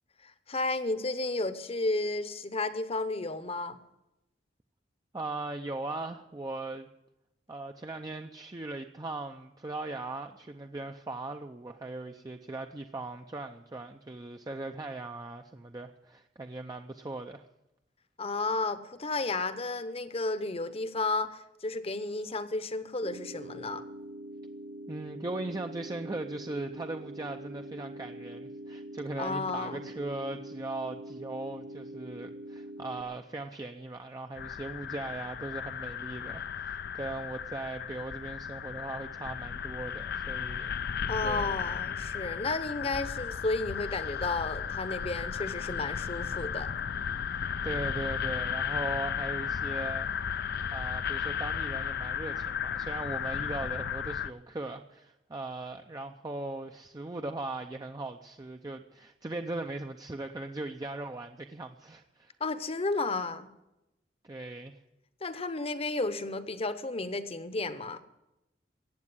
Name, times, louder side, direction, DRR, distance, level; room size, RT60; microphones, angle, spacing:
voice 1, 0.2-3.8 18.2-23.8 29.2-29.9 41.1-46.7 62.4-63.5 65.2-68.0, left 3 dB, 30° left, 12 dB, 0.9 m, -32 dB
voice 2, 5.1-6.9 7.5-17.4 24.9-40.7 41.2-41.5 47.3-50.1 50.7-62.3 64.2-64.8, right 2 dB, 20° right, 5 dB, 0.5 m, -39 dB
sound 1, 23.0-33.0, right 1 dB, 50° right, 1.1 m, -44 dB
sound 2, 34.4-54.3, left 8 dB, 60° left, 0.5 m, -35 dB
15.0 x 8.8 x 9.7 m, 0.93 s
head